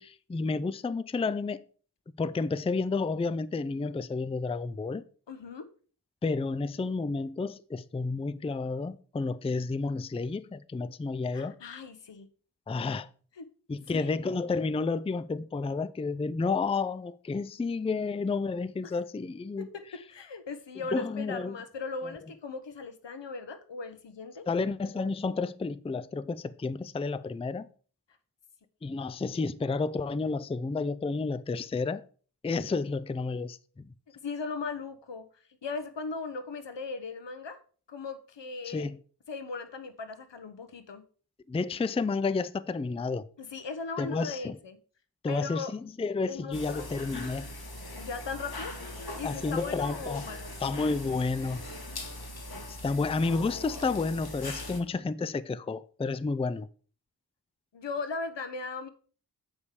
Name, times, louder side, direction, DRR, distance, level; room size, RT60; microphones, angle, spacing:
voice 1, 0.0-1.6 2.2-5.0 6.2-11.6 12.7-13.1 13.7-19.7 20.9-21.6 24.5-27.7 28.8-32.0 32.4-33.9 38.6-39.0 41.5-43.3 44.0-44.6 45.2-47.5 49.2-50.3 50.6-51.6 52.7-56.7, left 4 dB, 15° left, 0.4 m, -31 dB
voice 2, 5.3-5.7 11.3-12.3 13.4-13.5 13.9-14.3 19.6-19.8 20.1-24.5 34.2-35.3 35.6-37.6 37.9-38.9 39.3-41.0 43.4-44.8 45.3-45.7 46.2-46.9 48.0-48.7 49.2-50.5 57.7-58.9, left 4 dB, 80° left, 1.0 m, -38 dB
sound 1, 46.5-54.8, left 1 dB, 60° left, 1.7 m, -41 dB
8.3 x 5.3 x 4.8 m
wide cardioid pair, 50°, 42 cm